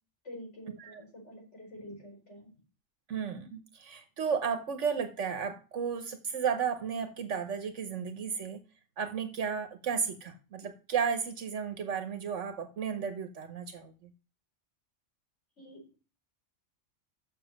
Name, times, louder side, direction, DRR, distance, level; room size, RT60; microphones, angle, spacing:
voice 1, 0.2-2.5 15.6-16.0, left 1 dB, 70° left, -2 dB, 5.0 m, -47 dB
voice 2, 3.1-8.6 9.0-13.9, right 6 dB, 75° right, 8 dB, 1.3 m, -33 dB
7.0 x 6.5 x 6.4 m, 0.35 s
omnidirectional pair, 1.3 m